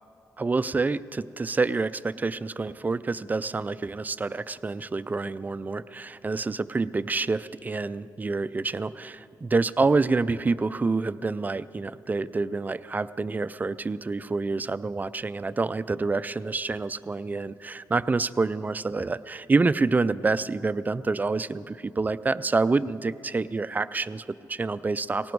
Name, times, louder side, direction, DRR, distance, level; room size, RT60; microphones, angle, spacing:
voice 1, 0.4-25.3, right 3 dB, 25° right, 15 dB, 0.3 m, -27 dB
18.5 x 16.5 x 4.7 m, 2.6 s
cardioid pair, 110°, 7 cm